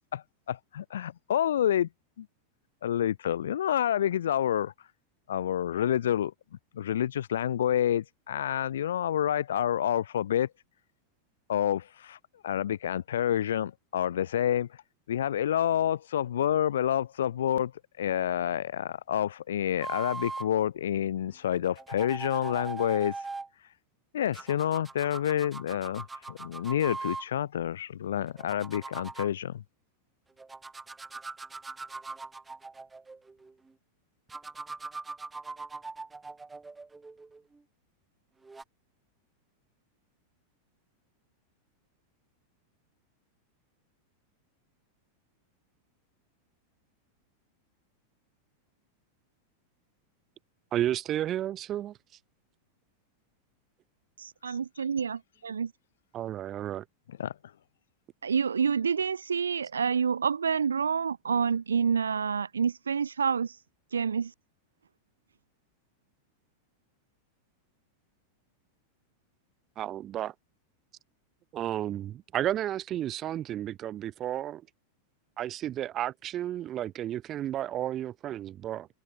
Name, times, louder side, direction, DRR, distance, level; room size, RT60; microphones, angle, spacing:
voice 1, 0.1-1.9 2.2-2.3 2.8-4.7 5.3-6.3 6.7-10.5 11.5-12.2 12.4-14.7 15.1-17.7 18.0-23.1 24.1-29.6 54.5-54.8 57.1-57.3, left 10 dB, 60° left, 1.5 m, -28 dB
sound 1, 19.8-20.5 21.6-23.5 24.3-27.3 28.2-29.3 30.4-33.5 34.3-37.6 38.4-38.6, right 3 dB, 10° right, 4.8 m, -40 dB
voice 2, 50.7-51.9 56.1-56.8 69.8-70.3 71.5-74.6 75.4-78.9, right 12 dB, 30° right, 1.0 m, -32 dB
voice 3, 54.2-55.7 58.2-63.6 63.9-64.3, right 6 dB, 70° right, 1.5 m, -28 dB
figure-of-eight pair, 90°, 0 cm